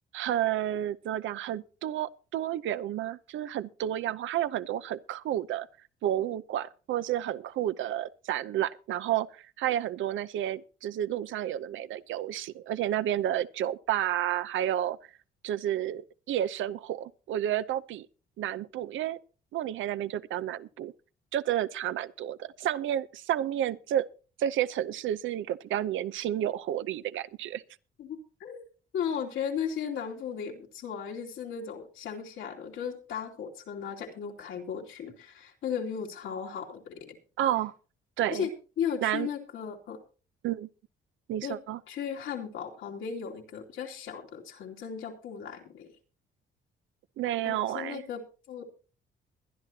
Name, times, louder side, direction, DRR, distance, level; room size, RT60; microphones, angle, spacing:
voice 1, 0.1-5.7 6.0-15.0 15.4-18.1 18.4-19.2 19.5-20.9 21.3-24.1 24.4-27.6 37.4-37.7 38.2-38.5 39.0-39.3 40.4-40.7 41.3-41.8 47.2-48.0, right 11 dB, 75° right, 0.7 m, -31 dB
voice 2, 28.0-28.6 28.9-37.2 38.3-38.5 38.8-40.0 41.4-41.6 41.9-45.9 47.4-48.7, left 7 dB, 80° left, 2.7 m, -36 dB
21.5 x 11.0 x 2.8 m
cardioid pair, 90°, 20 cm